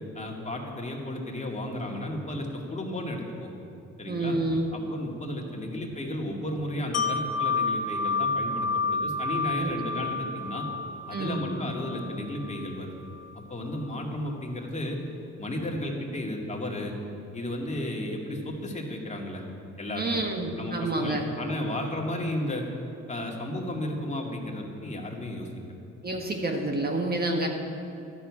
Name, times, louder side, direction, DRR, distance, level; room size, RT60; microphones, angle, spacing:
voice 1, 0.1-3.5 4.0-4.3 4.7-10.6 11.1-13.0 13.5-15.0 15.4-16.9 17.3-19.4 19.8-20.1 20.6-22.7 23.1-25.5, left 1 dB, 25° left, -1 dB, 2.3 m, -33 dB
voice 2, 4.1-4.7 9.6-9.7 11.1-11.4 20.0-21.3 26.0-27.5, right 2 dB, 30° right, 2 dB, 1.5 m, -28 dB
Wind chime, 6.9-12.7 13.1-13.3, left 3 dB, 55° left, 1.6 m, -30 dB
13.0 x 7.0 x 9.8 m, 2.7 s
cardioid pair, 90°, 30 cm